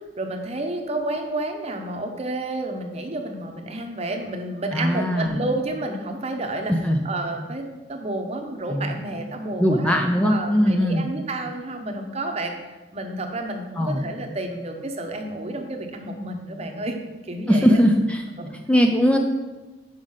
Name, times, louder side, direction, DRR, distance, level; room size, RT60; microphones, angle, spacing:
voice 1, 0.2-6.7 7.0-12.5 12.9-17.0 17.3-17.8 18.4-18.5, right 2 dB, 35° right, 4 dB, 0.8 m, -30 dB
voice 2, 4.7-5.4 6.7-7.0 8.7-8.9 9.6-11.0 13.8-14.0 17.5-18.2 18.7-19.2, equal, 5° left, 2 dB, 0.4 m, -20 dB
5.5 x 5.0 x 6.4 m, 1.2 s
head